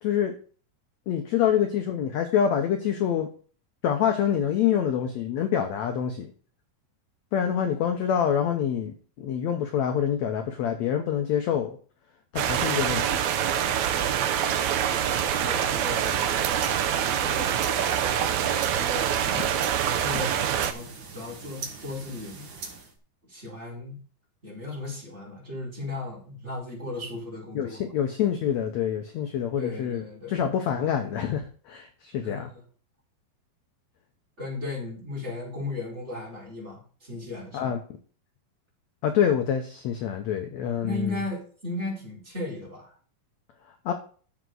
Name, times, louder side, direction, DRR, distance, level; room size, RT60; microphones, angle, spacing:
voice 1, 0.0-0.3 1.1-3.3 3.8-6.3 7.3-11.8 12.3-13.2 19.3-19.5 27.5-32.5 37.5-37.8 39.0-41.2 43.9-44.0, left 9 dB, 75° left, 5 dB, 1.7 m, -26 dB
sound 1, 12.4-20.7, right 9 dB, 85° right, 1.6 m, -25 dB
voice 2, 13.5-14.3 14.8-16.2 16.9-18.1 18.7-19.5 19.9-22.5 23.2-24.0 24.4-27.8 29.6-30.4 32.2-32.6 34.4-37.7 40.8-42.9, left 2 dB, 15° right, -4 dB, 4.7 m, -36 dB
sound 2, 16.3-23.0, right 4 dB, 55° right, 1.4 m, -42 dB
11.0 x 7.2 x 3.9 m, 0.41 s
omnidirectional pair, 4.2 m